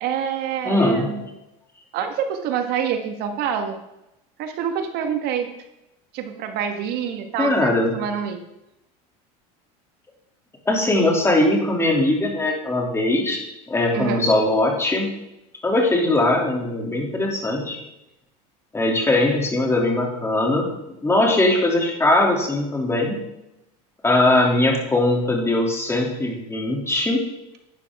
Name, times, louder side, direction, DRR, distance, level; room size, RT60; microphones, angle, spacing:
voice 1, 0.0-1.2 1.9-3.8 4.4-5.5 6.1-8.4 13.9-14.2, right 8 dB, 60° right, 6 dB, 1.7 m, -26 dB
voice 2, 0.6-1.2 7.4-7.9 10.7-13.4 13.7-15.1 15.6-17.8 18.7-20.7 21.0-23.2 24.0-27.2, left 2 dB, 15° left, 0 dB, 3.0 m, -20 dB
11.5 x 9.5 x 3.7 m, 0.89 s
supercardioid pair, 110°, 19 cm